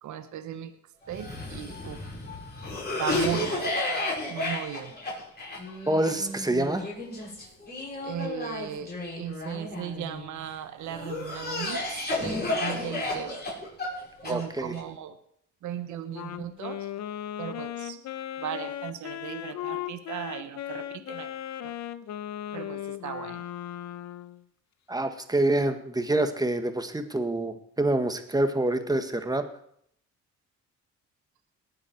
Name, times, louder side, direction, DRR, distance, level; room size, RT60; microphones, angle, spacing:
voice 1, 0.0-0.7 1.1-2.0 3.0-3.7 4.3-4.9 8.0-13.5 14.2-15.2 15.6-16.9 17.4-18.0 18.4-21.3 21.6-21.7 22.5-23.4, right 10 dB, 75° right, 10 dB, 1.2 m, -37 dB
Cough, 1.1-10.3 10.9-14.8, left 2 dB, 35° left, 6.5 m, -32 dB
voice 2, 5.9-6.9 14.3-14.7 24.9-29.4, right 1 dB, 15° right, 8 dB, 1.5 m, -26 dB
Wind instrument woodwind instrument, 16.1-24.4, left 11 dB, 65° left, 0.8 m, -37 dB
19.5 x 7.8 x 4.6 m, 0.68 s
cardioid pair, 90°, 30 cm